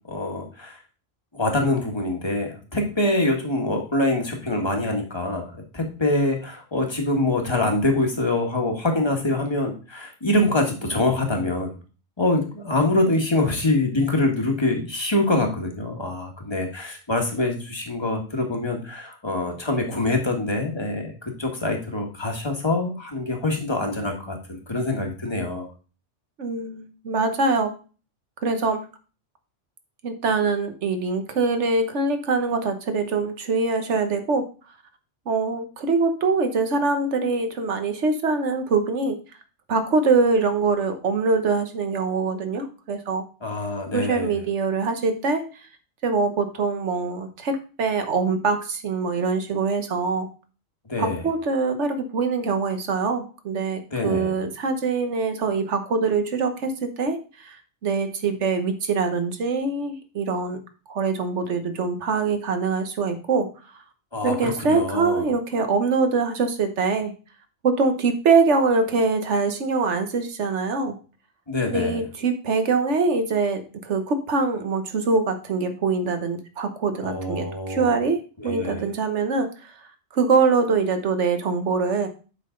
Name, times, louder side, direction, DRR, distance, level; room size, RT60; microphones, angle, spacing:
voice 1, 0.1-0.8 1.3-5.4 5.7-11.7 12.2-25.7 43.4-44.4 50.9-51.3 53.9-54.3 64.1-65.3 71.5-72.0 77.0-78.0 78.4-78.8, left 2 dB, 20° left, 2 dB, 1.5 m, -25 dB
voice 2, 26.4-27.7 28.4-28.8 30.0-34.4 35.3-39.2 39.7-43.2 43.9-45.7 46.0-50.3 51.0-57.6 57.8-60.6 60.9-63.5 64.2-67.1 67.6-71.0 71.7-79.7 80.1-82.1, right 4 dB, 75° right, 7 dB, 1.4 m, -23 dB
7.7 x 5.7 x 3.8 m, 0.36 s
omnidirectional pair, 1.2 m